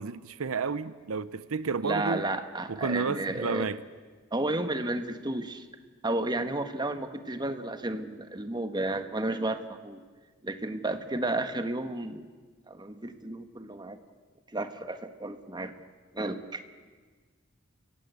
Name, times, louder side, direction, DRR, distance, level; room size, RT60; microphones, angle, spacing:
voice 1, 0.0-2.2 2.7-3.8, right 5 dB, 85° right, 15 dB, 0.7 m, -31 dB
voice 2, 1.8-3.7 4.3-5.7 6.0-10.0 10.4-12.3 12.7-14.0 14.5-15.7 16.1-16.6, right 2 dB, 20° right, 8 dB, 1.2 m, -32 dB
29.5 x 16.5 x 8.2 m, 1.4 s
head